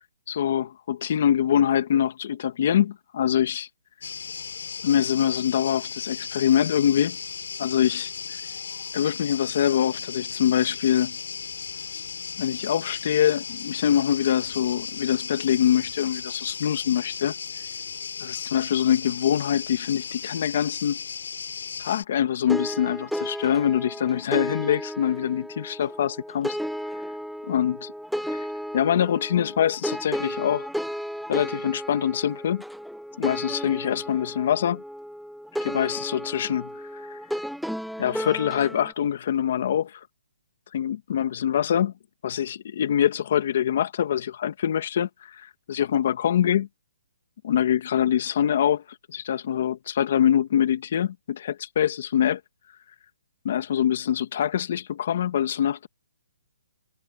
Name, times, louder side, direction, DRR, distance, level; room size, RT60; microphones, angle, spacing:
voice 1, 0.3-3.7 4.8-7.2 7.6-8.1 8.9-11.2 12.4-17.3 18.2-21.0 21.8-26.6 27.5-27.9 28.3-28.5 28.7-30.7 31.3-32.6 33.2-34.8 35.6-37.2 38.0-40.0 40.7-41.9 42.2-46.7 47.4-48.8 49.1-52.4 53.4-55.9, left 9 dB, 40° left, 1.8 m, -24 dB
sound 1, 4.0-22.0, left 6 dB, 70° left, 3.9 m, -36 dB
sound 2, 22.5-38.9, equal, ahead, 1.5 m, -33 dB
hypercardioid pair, 170°, 0 cm